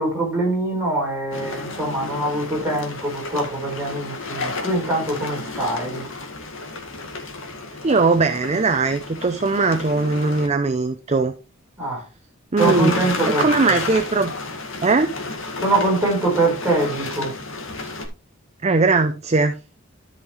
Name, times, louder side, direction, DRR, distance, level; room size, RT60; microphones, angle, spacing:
voice 1, 0.0-6.0 11.8-12.0 12.6-13.7 15.6-17.3, right 2 dB, 10° right, 5.0 m, -23 dB
sound 1, 1.3-10.5 12.6-18.1, left 3 dB, 65° left, 1.9 m, -31 dB
voice 2, 7.8-11.3 12.5-13.0 13.3-14.3 14.8-15.2 18.6-19.6, right 3 dB, 30° right, 0.5 m, -20 dB
13.0 x 5.5 x 3.1 m
head